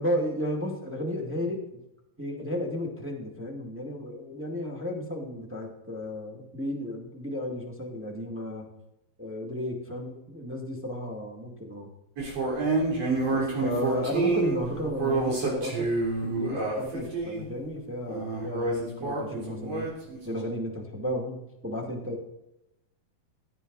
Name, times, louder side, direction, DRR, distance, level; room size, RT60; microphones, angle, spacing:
voice 1, 0.0-1.6 2.2-8.7 9.2-11.9 13.3-15.9 16.2-19.9 20.2-22.4, left 1 dB, 5° right, 0 dB, 1.4 m, -33 dB
sound 1, 12.2-17.5 18.1-20.4, right 3 dB, 50° right, 4.4 m, -28 dB
16.5 x 10.5 x 4.1 m, 0.86 s
omnidirectional pair, 4.0 m